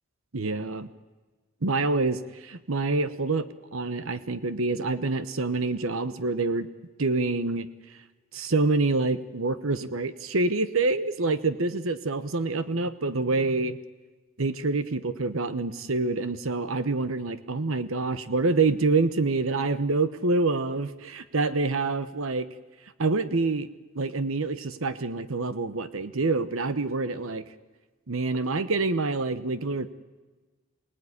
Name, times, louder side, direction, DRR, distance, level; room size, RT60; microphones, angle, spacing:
voice 1, 0.3-0.9 1.6-3.5 3.7-6.7 7.0-8.0 8.3-13.8 14.4-22.5 23.0-23.7 23.9-27.4 28.1-29.9, right 3 dB, 75° right, 13 dB, 1.0 m, -26 dB
27.5 x 18.5 x 9.8 m, 1.3 s
head